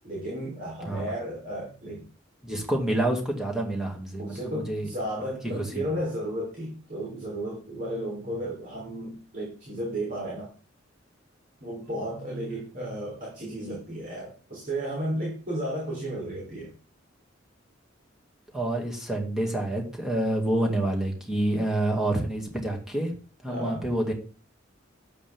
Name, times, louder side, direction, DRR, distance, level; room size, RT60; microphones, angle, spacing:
voice 1, 0.0-2.1 4.2-10.5 11.6-16.7 23.5-23.9, right 1 dB, 45° right, -3 dB, 3.8 m, -33 dB
voice 2, 2.4-4.9 5.4-5.9 18.5-23.1 23.4-24.1, right 1 dB, 5° right, 0 dB, 2.3 m, -28 dB
12.0 x 8.7 x 3.6 m, 0.39 s
head